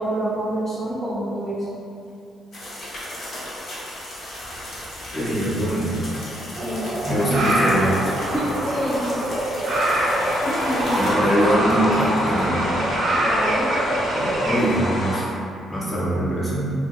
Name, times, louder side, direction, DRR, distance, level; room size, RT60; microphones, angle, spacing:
voice 1, 0.0-1.7 6.6-6.9 8.3-9.2 10.4-11.3 13.2-13.7, right 1 dB, 15° right, -10 dB, 0.5 m, -27 dB
sound 1, 2.5-11.1, left 1 dB, 65° left, 0.8 m, -36 dB
voice 2, 5.1-6.0 7.0-7.9 10.9-12.7 14.1-15.3 15.7-16.6, right 1 dB, 25° left, -7 dB, 0.7 m, -22 dB
sound 2, 6.6-14.6, right 1 dB, 65° right, 0.5 m, -24 dB
sound 3, 9.7-15.2, left 1 dB, 50° left, 0.4 m, -28 dB
2.7 x 2.1 x 2.2 m, 2.5 s
cardioid pair, 90°, 0 cm